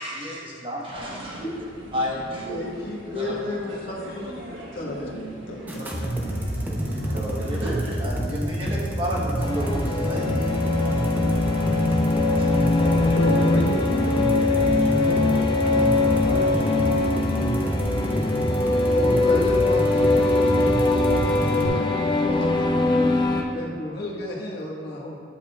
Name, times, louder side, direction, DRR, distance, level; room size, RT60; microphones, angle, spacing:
voice 1, 0.0-1.5 1.9-2.6 3.1-3.4 5.6-5.9 6.5-11.3 11.8-11.9 12.4-12.5, equal, 30° right, -4 dB, 1.2 m, -32 dB
sound 1, 0.9-7.7, right 2 dB, 85° right, 1.1 m, -40 dB
voice 2, 2.4-4.4 4.7-5.1 18.4-21.8 22.2-23.1 23.4-25.2, left 1 dB, 55° left, -5 dB, 1.4 m, -32 dB
voice 3, 4.9-6.0 12.8-17.1, left 1 dB, 75° left, 1 dB, 0.7 m, -32 dB
sound 2, 5.7-21.7, equal, 10° right, 0.7 m, -28 dB
sound 3, 9.4-23.4, left 2 dB, 25° left, 0.5 m, -22 dB
10.5 x 6.5 x 2.4 m, 2.2 s
head